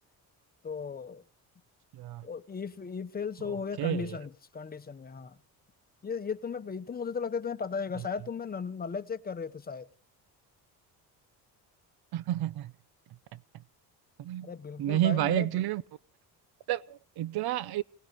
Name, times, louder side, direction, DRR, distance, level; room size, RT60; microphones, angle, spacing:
voice 1, 0.6-1.2 2.2-5.4 6.0-9.9 14.4-15.5, left 5 dB, 25° left, 0.9 m, -36 dB
voice 2, 1.9-2.2 3.5-4.2 12.1-12.7 14.2-14.5 14.8-15.8 16.7-17.8, right 13 dB, 70° right, 0.7 m, -30 dB
27.5 x 17.5 x 3.0 m
cardioid pair, 160°, 39 cm